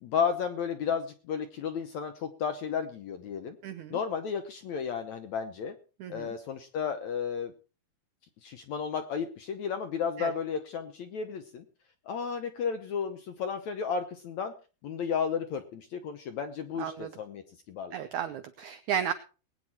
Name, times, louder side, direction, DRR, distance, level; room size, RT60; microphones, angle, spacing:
voice 1, 0.0-3.6 3.9-5.8 6.1-7.5 8.4-11.7 12.1-14.5 14.8-18.0, left 6 dB, 70° left, 8 dB, 1.7 m, -33 dB
voice 2, 3.6-4.0 6.0-6.4 10.2-10.3 16.8-17.1 17.9-19.1, right 9 dB, 90° right, 10 dB, 1.6 m, -34 dB
21.0 x 9.2 x 4.3 m, 0.35 s
omnidirectional pair, 4.5 m